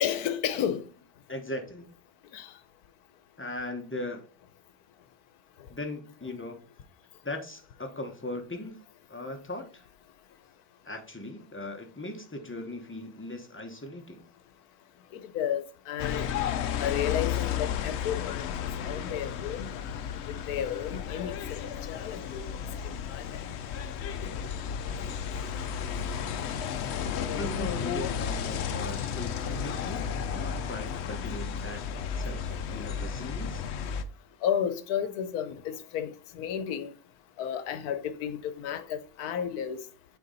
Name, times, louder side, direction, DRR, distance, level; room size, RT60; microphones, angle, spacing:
voice 1, 0.0-0.8 2.3-2.5 15.1-16.3 16.8-18.5 18.9-20.0 20.5-21.6 21.9-22.5 22.8-23.5 34.4-36.9 37.4-39.8, left 9 dB, 80° left, 1.2 m, -32 dB
voice 2, 1.3-1.9 3.4-4.3 5.7-6.6 7.2-8.8 9.1-9.9 10.8-14.2 27.3-31.8 32.2-33.6, left 1 dB, 10° left, 0.7 m, -39 dB
sound 1, 16.0-34.0, left 8 dB, 65° left, 0.7 m, -33 dB
6.7 x 4.5 x 3.9 m
omnidirectional pair, 1.6 m